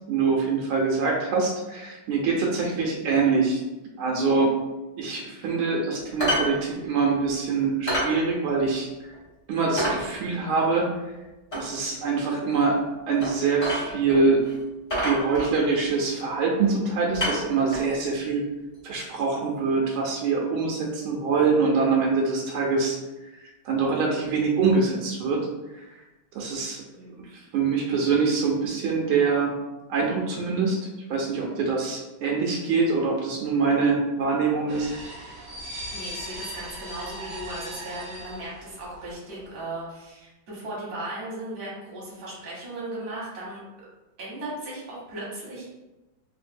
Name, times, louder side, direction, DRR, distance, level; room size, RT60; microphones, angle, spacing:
voice 1, 0.1-3.6 4.0-4.5 5.0-8.9 9.5-10.9 11.5-12.8 13.1-14.4 15.0-18.4 18.8-23.0 23.3-25.5 25.7-25.8 26.3-26.8 27.3-29.5 29.9-30.8 31.1-34.9, right 4 dB, 80° right, -1 dB, 1.4 m, -24 dB
sound 1, 6.2-6.5 6.8-6.9 7.3-7.4 7.9-8.1 8.6-8.7 9.1-9.2 9.8-10.0 11.5-11.7 13.2-13.3 13.6-14.2 14.4-14.5 14.9-15.8 16.6-16.8 17.1-17.9 18.9-19.0, equal, 35° left, 0.5 m, -27 dB
sound 2, 34.7-39.1 39.3-39.5, equal, 65° right, 0.8 m, -38 dB
voice 2, 35.9-43.6 44.2-45.7, right 1 dB, 35° right, -6 dB, 0.9 m, -37 dB
3.3 x 2.5 x 2.5 m, 1.0 s
omnidirectional pair, 2.3 m